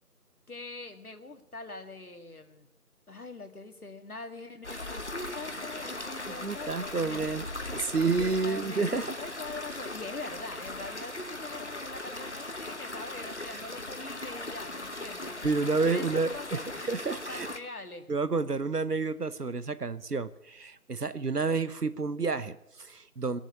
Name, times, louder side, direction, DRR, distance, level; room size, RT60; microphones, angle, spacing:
voice 1, 0.5-2.7 3.1-7.3 8.2-15.3 15.8-16.7 17.3-18.1, left 2 dB, 70° left, 6 dB, 2.0 m, -43 dB
sound 1, 4.6-17.6, left 2 dB, 45° left, 1.1 m, -39 dB
voice 2, 6.3-9.1 15.4-17.5 18.1-23.4, right 4 dB, 85° right, 14 dB, 1.1 m, -30 dB
20.5 x 7.3 x 9.7 m, 0.85 s
figure-of-eight pair, 170°, 46 cm